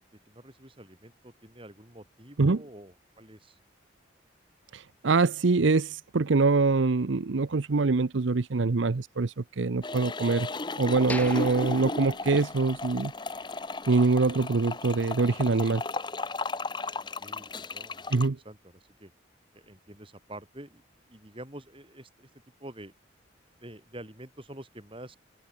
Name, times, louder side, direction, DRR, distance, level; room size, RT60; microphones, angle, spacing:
voice 1, 0.0-3.6 17.2-18.1 18.4-19.1 19.5-22.3 22.6-22.9 23.6-25.2, right 1 dB, 25° right, 4.6 m, -47 dB
voice 2, 4.7-10.5 10.8-13.1 13.9-15.8 18.1-18.4, right 3 dB, 75° right, 0.7 m, -24 dB
sound 1, 9.8-18.3, left 3 dB, 25° left, 1.1 m, -35 dB
sound 2, 11.1-13.0 13.3-13.4 14.0-14.1, left 1 dB, 10° left, 1.4 m, -40 dB
open air
head